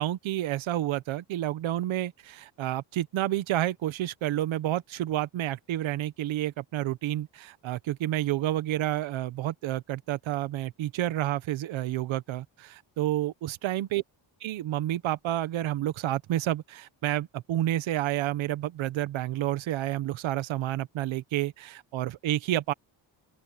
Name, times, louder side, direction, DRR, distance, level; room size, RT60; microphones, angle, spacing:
voice 1, 0.0-14.0 14.4-22.7, right 13 dB, 80° right, 1.2 m, -30 dB
open air
cardioid pair, 175°, 46 cm